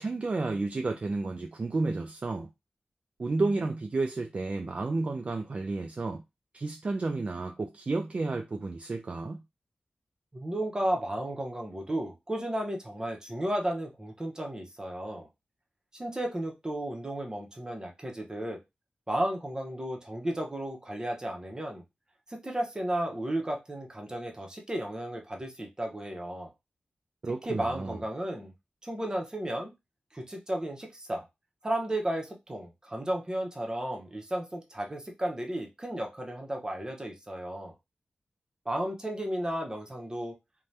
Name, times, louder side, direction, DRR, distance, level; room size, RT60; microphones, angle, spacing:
voice 1, 0.0-2.5 3.2-6.2 6.5-9.4 27.2-28.0, right 3 dB, 40° right, 0.3 m, -31 dB
voice 2, 10.3-15.3 15.9-18.6 19.1-21.8 22.4-26.5 27.5-28.5 28.8-29.7 30.1-31.2 31.6-37.7 38.7-40.3, right 1 dB, 20° right, 0.8 m, -33 dB
2.7 x 2.2 x 3.2 m
wide cardioid pair, 90°, 3 cm